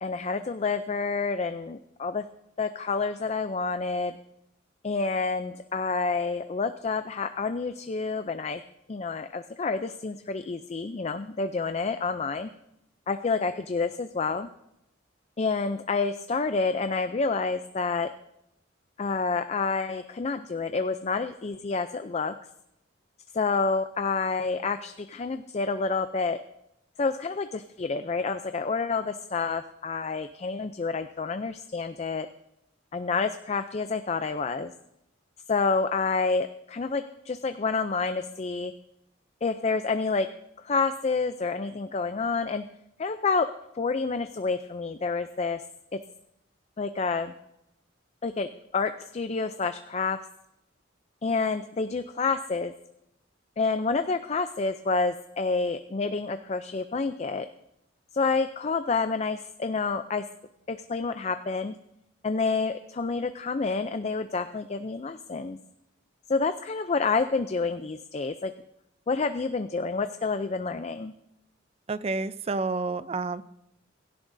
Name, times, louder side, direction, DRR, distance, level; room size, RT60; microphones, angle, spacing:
voice 1, 0.0-2.2 2.6-4.2 4.8-8.6 8.9-12.5 13.1-14.5 15.4-18.1 19.0-22.3 23.3-26.4 27.0-32.3 32.9-34.7 35.5-38.7 39.4-40.3 40.6-42.6 43.0-43.5 43.8-45.6 46.8-47.3 48.2-48.5 48.7-50.2 51.2-52.7 53.6-57.5 58.1-60.2 60.7-61.7 62.2-65.6 66.3-68.5 69.1-71.1, left 4 dB, 35° left, 9 dB, 0.4 m, -28 dB
voice 2, 71.9-73.4, right 3 dB, 30° right, 14 dB, 0.4 m, -29 dB
16.5 x 16.0 x 2.6 m, 0.82 s
head